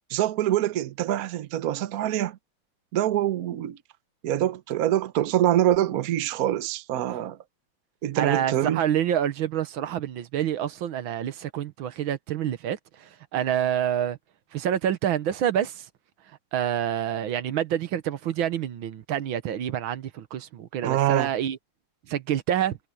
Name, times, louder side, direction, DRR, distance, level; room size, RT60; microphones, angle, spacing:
voice 1, 0.1-2.4 2.9-3.8 4.2-7.4 8.0-8.8 20.8-21.3, right 12 dB, 55° right, 1.1 m, -25 dB
voice 2, 8.2-12.8 13.3-14.2 14.5-15.7 16.5-21.6 22.1-22.8, right 10 dB, 80° right, 1.8 m, -27 dB
omnidirectional pair, 2.2 m